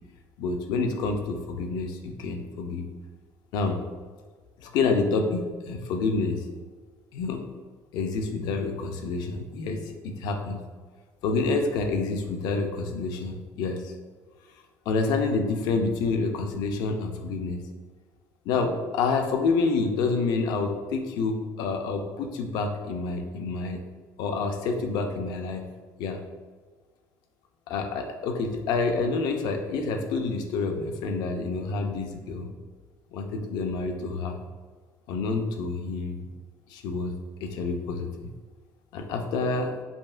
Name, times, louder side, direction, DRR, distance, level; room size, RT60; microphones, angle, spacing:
voice 1, 0.4-2.9 3.5-3.8 4.6-6.4 7.1-7.4 7.9-10.6 11.2-13.9 14.9-17.6 18.5-23.8 24.2-25.6 26.0-26.2 27.7-32.5 33.1-34.4 35.1-36.2 36.7-37.1 37.4-38.3 38.9-39.7, left 4 dB, 75° left, 5 dB, 0.5 m, -28 dB
5.1 x 2.8 x 2.5 m, 1.5 s
cardioid pair, 145°, 7 cm